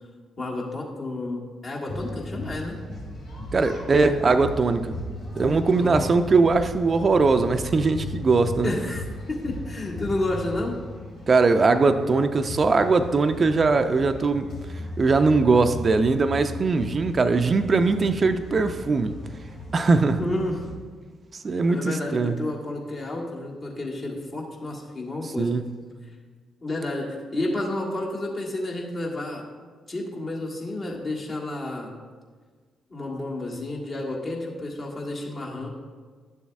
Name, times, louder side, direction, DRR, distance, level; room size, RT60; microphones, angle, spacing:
voice 1, 0.4-2.8 5.8-6.1 8.6-10.8 20.2-20.6 21.7-25.5 26.6-29.4 29.9-31.9 32.9-35.7, left 2 dB, 45° left, -2 dB, 1.7 m, -31 dB
sound 1, 1.9-20.7, left 1 dB, 70° left, 2.3 m, -37 dB
voice 2, 3.5-5.0 5.3-8.7 11.3-14.5 15.0-19.2 19.7-20.2 21.4-22.4 25.4-25.7, right 4 dB, 40° right, 9 dB, 0.4 m, -21 dB
11.5 x 7.0 x 2.4 m, 1.5 s
hypercardioid pair, 40°, 0 cm